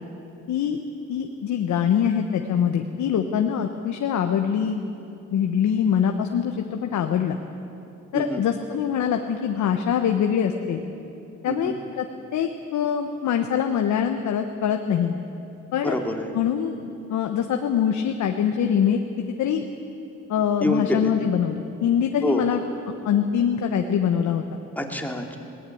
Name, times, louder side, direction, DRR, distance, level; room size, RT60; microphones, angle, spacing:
voice 1, 0.5-0.8 1.1-4.8 5.3-7.4 8.1-10.8 11.4-12.0 12.3-15.1 15.7-16.0 16.3-16.7 17.1-19.0 19.4-19.7 20.3-22.6 22.9-24.6, left 8 dB, 70° left, 5 dB, 1.2 m, -23 dB
voice 2, 15.8-16.3 20.6-21.1 22.2-22.6 24.8-25.4, left 1 dB, 5° left, 2 dB, 2.5 m, -26 dB
19.5 x 18.5 x 8.6 m, 2.7 s
cardioid pair, 90°, 30 cm